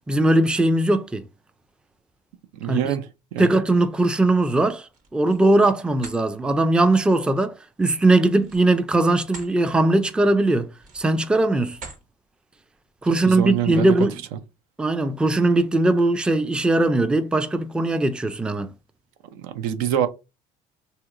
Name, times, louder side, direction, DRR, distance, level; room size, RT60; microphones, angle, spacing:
voice 1, 0.1-1.2 2.7-2.8 3.4-10.7 10.9-11.8 13.0-14.2 14.8-18.7, right 2 dB, 5° right, 0.3 m, -20 dB
voice 2, 2.5-3.1 3.3-3.5 13.2-13.9 19.3-20.1, right 10 dB, 85° right, 0.5 m, -25 dB
sound 1, 4.8-5.5 5.9-6.2 8.4-9.5 10.0-10.2 10.7-11.2 11.7-12.1, right 3 dB, 50° right, 1.1 m, -43 dB
3.2 x 2.8 x 2.4 m
supercardioid pair, 90°, 17 cm